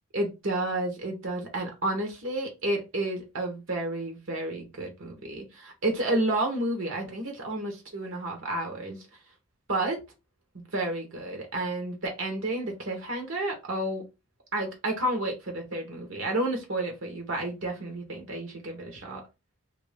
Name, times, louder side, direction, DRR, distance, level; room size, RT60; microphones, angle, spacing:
voice 1, 0.1-9.0 9.7-10.0 10.7-14.0 14.5-19.2, right 1 dB, 65° right, 3 dB, 0.9 m, -31 dB
3.0 x 2.6 x 3.3 m, 0.26 s
head